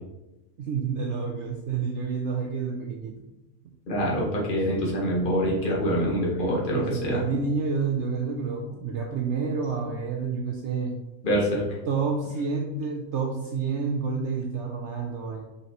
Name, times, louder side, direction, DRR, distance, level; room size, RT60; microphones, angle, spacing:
voice 1, 0.6-3.2 6.7-11.0 11.9-15.4, right 5 dB, 65° right, 1 dB, 0.9 m, -29 dB
voice 2, 3.9-7.2 11.2-11.6, equal, 40° left, -4 dB, 1.5 m, -25 dB
5.7 x 5.5 x 3.0 m, 1.0 s
omnidirectional pair, 1.4 m